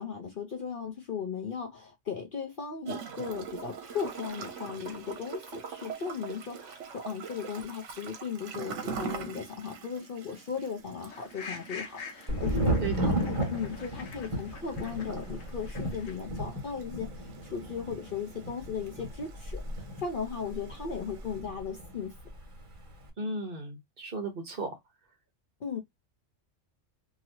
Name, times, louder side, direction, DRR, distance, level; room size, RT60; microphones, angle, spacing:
voice 1, 0.0-12.7 13.0-22.1 25.6-25.8, left 6 dB, 50° left, 0.7 m, -37 dB
Gurgling / Toilet flush, 2.9-21.4, right 6 dB, 70° right, 1.1 m, -44 dB
sound 1, 11.1-16.2, left 5 dB, 85° left, 1.2 m, -46 dB
Thunder, 12.3-21.9 22.2-22.9, right 1 dB, 25° right, 1.4 m, -34 dB
voice 2, 23.2-24.8, right 3 dB, 45° right, 1.1 m, -35 dB
3.0 x 2.9 x 2.6 m
omnidirectional pair, 1.3 m